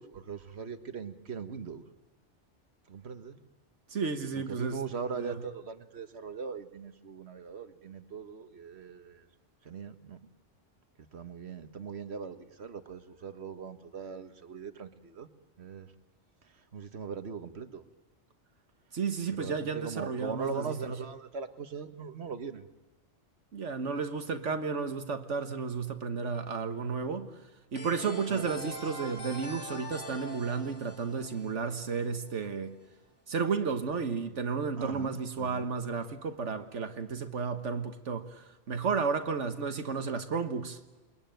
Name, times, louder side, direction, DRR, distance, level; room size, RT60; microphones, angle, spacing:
voice 1, 0.0-1.8 2.9-3.4 4.3-9.2 9.7-10.2 11.1-15.3 15.6-15.9 16.7-17.8 19.4-22.7 28.3-28.5 34.8-35.7, right 5 dB, 65° right, 1.7 m, -40 dB
voice 2, 3.9-4.8 5.2-5.4 18.9-20.8 23.5-27.3 27.7-32.8 33.3-40.8, right 5 dB, 85° right, 1.7 m, -33 dB
sound 1, 27.8-32.4, equal, 50° left, 3.2 m, -43 dB
28.0 x 22.5 x 9.2 m
omnidirectional pair, 1.2 m